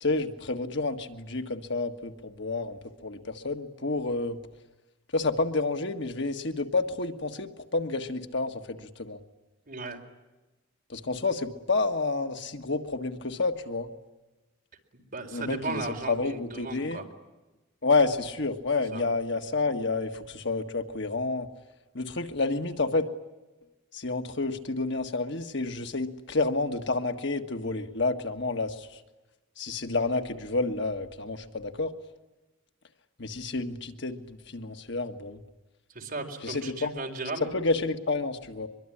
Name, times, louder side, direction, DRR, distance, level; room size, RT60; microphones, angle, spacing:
voice 1, 0.0-4.4 5.1-9.2 10.9-13.9 15.3-17.1 17.8-21.5 21.9-23.1 23.9-29.0 29.6-31.9 33.2-35.4 36.4-37.0 37.4-38.7, left 3 dB, 60° left, 6 dB, 1.7 m, -29 dB
voice 2, 9.7-10.0 15.1-17.0 18.9-19.0 35.9-37.5, right 3 dB, 45° right, 3 dB, 4.4 m, -36 dB
24.0 x 23.0 x 10.0 m, 1.1 s
head